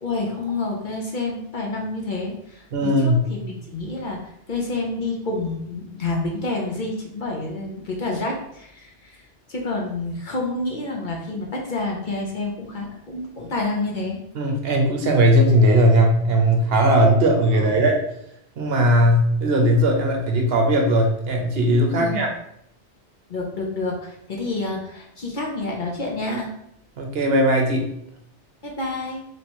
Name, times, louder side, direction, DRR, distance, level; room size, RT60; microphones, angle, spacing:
voice 1, 0.0-9.2 9.5-14.2 17.5-17.8 21.9-22.3 23.3-26.5 28.6-29.2, left 2 dB, 50° left, -1 dB, 0.7 m, -28 dB
voice 2, 2.7-3.2 14.3-18.0 18.6-22.3 27.0-27.9, right 1 dB, 60° right, 2 dB, 0.9 m, -18 dB
3.1 x 2.8 x 4.3 m, 0.75 s
omnidirectional pair, 1.2 m